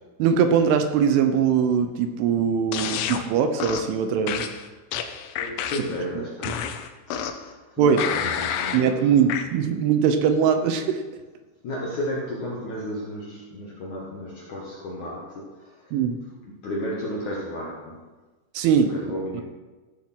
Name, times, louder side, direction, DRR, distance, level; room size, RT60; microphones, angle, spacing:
voice 1, 0.2-4.5 6.5-6.6 7.8-8.1 8.7-11.0 15.9-16.2 18.5-18.9, right 7 dB, 80° right, 7 dB, 3.2 m, -21 dB
sound 1, 2.7-3.2 3.6-3.9 4.3-6.0 6.4-7.5 8.0-8.8 9.3-9.4, left 8 dB, 80° left, 2.4 m, -29 dB
voice 2, 5.4-6.7 7.1-9.1 11.6-15.9 16.4-18.0 18.9-19.4, equal, 60° left, -4 dB, 2.1 m, -33 dB
15.0 x 7.5 x 6.1 m, 1.2 s
omnidirectional pair, 5.8 m